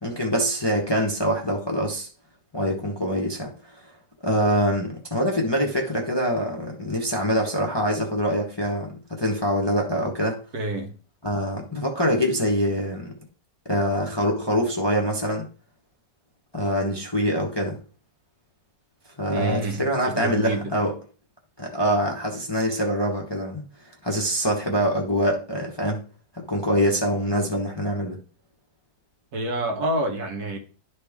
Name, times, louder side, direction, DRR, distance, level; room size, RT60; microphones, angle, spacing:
voice 1, 0.0-2.1 2.5-3.9 4.2-10.4 11.2-13.1 13.7-15.5 16.5-17.8 19.2-20.9 21.6-23.6 24.0-26.0 26.3-28.2, equal, 15° left, 1.0 m, -24 dB
voice 2, 10.5-11.0 19.3-20.7 29.3-30.6, right 1 dB, 60° right, 1.8 m, -28 dB
11.5 x 4.2 x 3.5 m
omnidirectional pair, 1.9 m